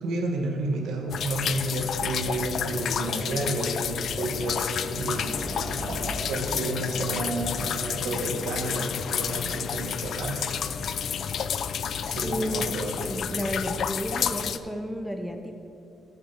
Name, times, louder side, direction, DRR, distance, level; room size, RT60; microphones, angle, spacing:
voice 1, 0.0-5.4 6.3-10.7 12.1-13.1, right 2 dB, 80° right, 2 dB, 1.2 m, -31 dB
sound 1, 1.1-14.6, left 7 dB, 65° left, 0.3 m, -30 dB
sound 2, 4.1-7.9, right 2 dB, 60° right, 1.5 m, -39 dB
voice 2, 12.2-12.7 13.0-15.5, equal, ahead, 4 dB, 0.6 m, -32 dB
7.3 x 6.4 x 5.2 m, 2.6 s
cardioid pair, 90°, 0 cm